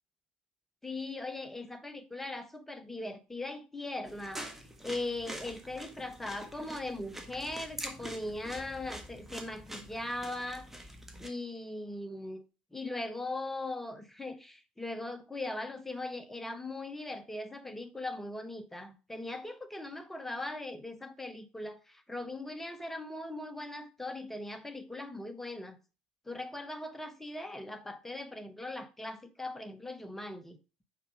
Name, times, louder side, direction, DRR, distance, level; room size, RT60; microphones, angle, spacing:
voice 1, 0.8-10.9 11.2-12.4 12.7-25.8 26.3-30.6, left 2 dB, 10° left, 0.9 m, -40 dB
sound 1, 4.1-11.3, right 1 dB, 10° right, 1.4 m, -45 dB
5.7 x 5.0 x 4.7 m
figure-of-eight pair, 55°, 4 cm